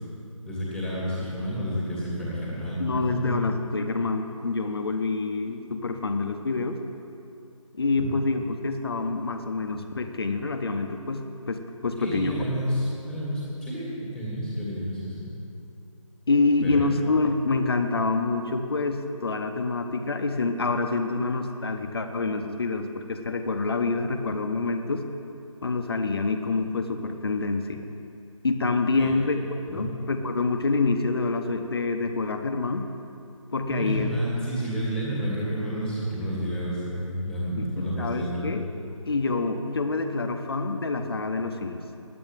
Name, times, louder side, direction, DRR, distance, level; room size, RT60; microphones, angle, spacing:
voice 1, 0.5-3.3 8.0-8.1 12.0-15.3 16.6-16.9 28.9-29.1 29.7-29.9 33.7-38.5, equal, 5° left, -9 dB, 1.9 m, -30 dB
voice 2, 2.8-6.8 7.8-12.4 16.3-25.0 25.6-27.9 28.4-32.8 33.5-34.1 37.6-37.7 38.0-38.6 39.1-41.8, left 3 dB, 45° left, 6 dB, 1.0 m, -27 dB
11.0 x 8.7 x 9.0 m, 2.6 s
figure-of-eight pair, 165°, 17 cm